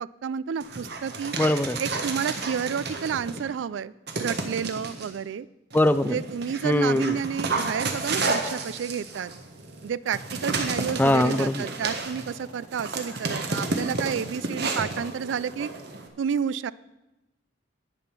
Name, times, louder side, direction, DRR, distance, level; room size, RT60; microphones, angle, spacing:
voice 1, 0.0-1.3 1.8-3.9 4.2-5.5 6.0-9.3 9.8-15.7 16.2-16.7, right 7 dB, 75° right, 19 dB, 0.3 m, -30 dB
Dog, 0.6-3.5 4.1-5.1 5.7-16.1, right 3 dB, 60° right, 1.4 m, -32 dB
voice 2, 1.4-1.8 5.7-6.2 6.6-7.2 11.0-11.7, left 1 dB, 10° left, 14 dB, 0.3 m, -22 dB
10.5 x 8.7 x 6.0 m, 0.97 s
head